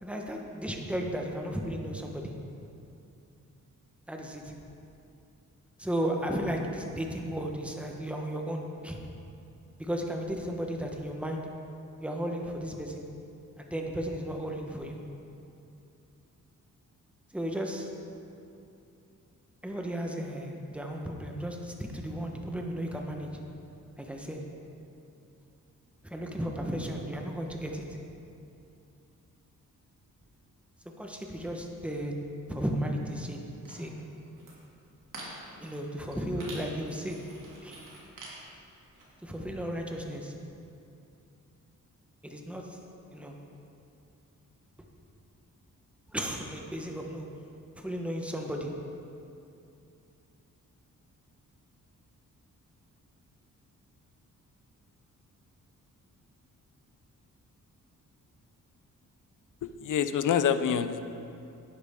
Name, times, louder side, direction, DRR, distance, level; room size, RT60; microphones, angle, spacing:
voice 1, 0.0-2.3 4.1-4.5 5.8-9.0 9.8-11.4 12.0-13.0 13.6-15.0 17.3-17.9 19.6-23.3 24.0-24.4 26.0-27.8 31.0-32.1 32.5-33.4 33.7-33.9 35.6-37.2 37.6-37.8 39.2-40.3 42.2-42.8 43.1-43.3 46.1-47.2 47.8-48.7, equal, 5° right, 1 dB, 1.1 m, -34 dB
sound 1, 33.6-33.9 34.2-34.5 35.0-35.8 36.1-36.2 36.4-39.0, right 2 dB, 75° right, 2.5 m, -46 dB
voice 2, 59.6-61.0, left 8 dB, 70° left, 11 dB, 0.6 m, -26 dB
11.0 x 9.6 x 3.7 m, 2.6 s
cardioid pair, 100°, 32 cm